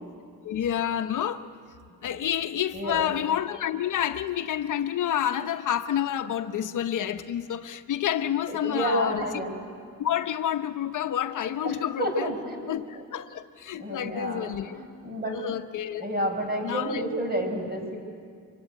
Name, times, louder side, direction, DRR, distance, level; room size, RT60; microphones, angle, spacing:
voice 1, 0.4-1.4 2.0-9.2 10.0-12.3 12.7-14.8 15.3-16.0 16.6-17.1, left 10 dB, 65° left, 8 dB, 0.9 m, -29 dB
voice 2, 2.7-3.1 8.5-9.5 11.6-13.0 13.7-15.4 16.0-18.0, right 1 dB, 30° right, 3 dB, 5.6 m, -30 dB
24.5 x 22.5 x 9.0 m, 2.2 s
cardioid pair, 105°, 34 cm